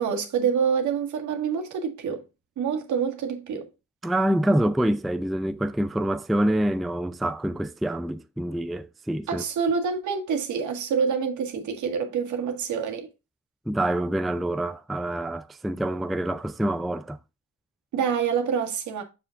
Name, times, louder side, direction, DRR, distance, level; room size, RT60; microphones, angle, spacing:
voice 1, 0.0-2.2 2.6-3.7 9.3-13.1 17.9-19.0, right 6 dB, 75° right, 1.8 m, -26 dB
voice 2, 4.0-9.4 13.7-17.2, right 1 dB, ahead, 0.4 m, -26 dB
6.8 x 6.7 x 2.5 m
cardioid pair, 90°, 30 cm